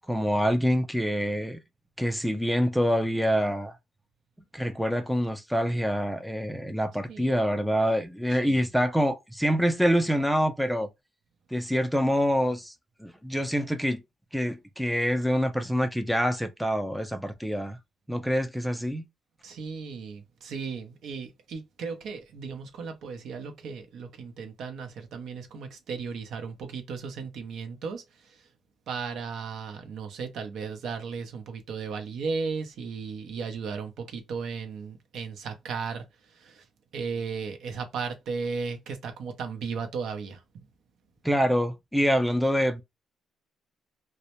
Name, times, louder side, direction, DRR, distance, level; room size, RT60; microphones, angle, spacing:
voice 1, 0.1-1.6 2.0-3.7 4.5-10.9 11.5-12.7 13.0-14.0 14.3-17.8 18.1-19.0 41.2-42.8, equal, ahead, 0.4 m, -26 dB
voice 2, 7.1-7.4 8.3-8.7 19.4-28.5 28.9-36.7 36.9-40.6, right 5 dB, 75° right, 0.6 m, -36 dB
2.1 x 2.1 x 2.8 m
cardioid pair, 90°, 0 cm